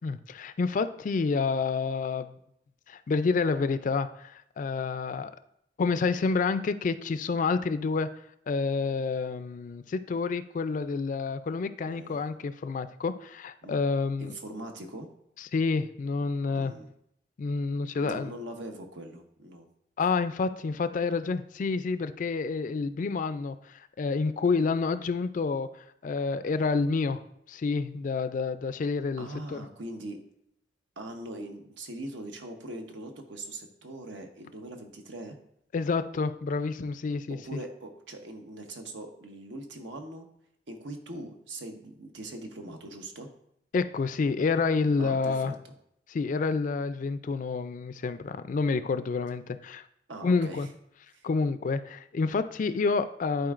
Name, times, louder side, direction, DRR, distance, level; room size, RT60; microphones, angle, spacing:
voice 1, 0.0-2.4 2.9-5.3 5.8-8.1 8.5-14.4 15.5-16.7 17.4-18.3 20.0-25.7 26.0-27.2 27.5-29.6 35.7-37.6 43.7-45.5 46.1-49.8 50.2-50.7 51.2-53.5, left 4 dB, 45° left, 12 dB, 0.3 m, -28 dB
voice 2, 11.9-12.2 13.6-13.7 14.2-15.1 16.5-16.9 18.0-19.7 29.2-30.2 31.0-35.4 37.4-40.3 40.7-43.3 45.0-45.7 50.1-50.7 51.1-51.3, right 1 dB, 85° right, 4 dB, 0.9 m, -41 dB
10.5 x 4.4 x 2.4 m, 0.74 s
head